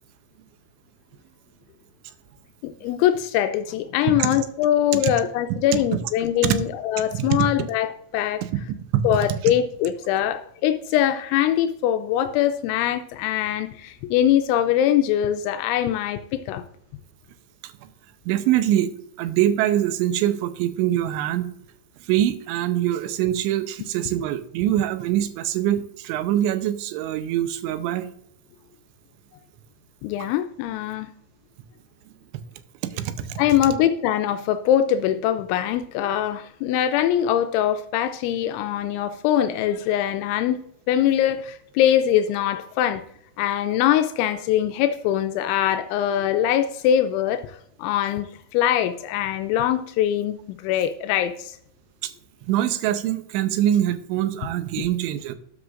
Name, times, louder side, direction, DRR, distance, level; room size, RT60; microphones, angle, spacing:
voice 1, 2.6-8.4 9.0-16.6 30.0-31.1 33.4-40.6 40.9-43.0 43.4-48.3 48.5-51.6, left 11 dB, 85° left, 2.9 m, -22 dB
voice 2, 8.9-9.4 17.8-17.9 18.3-18.9 19.2-21.5 22.1-28.1 32.8-33.4 52.0-52.1 52.5-55.4, right 12 dB, 85° right, 3.0 m, -24 dB
12.5 x 9.6 x 2.5 m
omnidirectional pair, 5.4 m